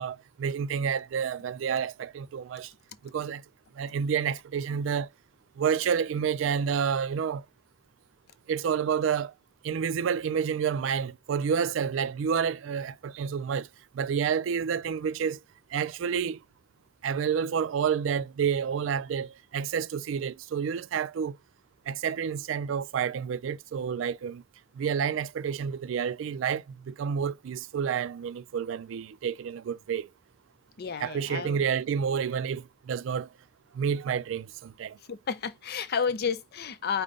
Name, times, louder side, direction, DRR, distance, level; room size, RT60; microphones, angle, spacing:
voice 1, 0.0-2.7 3.1-3.4 3.8-5.1 5.6-7.4 8.5-9.3 9.6-13.7 13.9-15.4 15.7-16.4 17.0-21.4 21.9-24.4 24.8-30.1 31.0-33.3 33.7-35.0, right 7 dB, 75° right, 0.3 m, -29 dB
voice 2, 30.8-31.6 35.1-37.0, left 6 dB, 55° left, 0.5 m, -31 dB
5.1 x 2.1 x 3.7 m
head